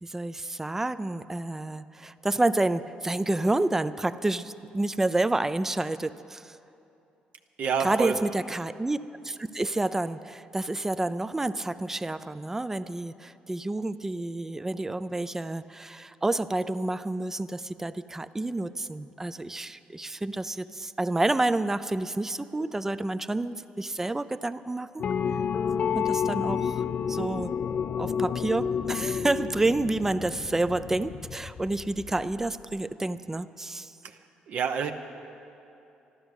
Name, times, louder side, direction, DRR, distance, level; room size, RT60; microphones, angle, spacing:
voice 1, 0.0-6.6 7.8-9.0 9.2-25.0 25.9-27.6 28.0-33.9, right 2 dB, 15° right, 14 dB, 0.4 m, -29 dB
voice 2, 7.6-8.1 34.0-34.1 34.5-34.9, right 6 dB, 60° right, 5 dB, 0.8 m, -27 dB
sound 1, 25.0-32.5, left 7 dB, 50° left, 0.4 m, -30 dB
12.5 x 12.5 x 8.1 m, 2.8 s
cardioid pair, 100°, 3 cm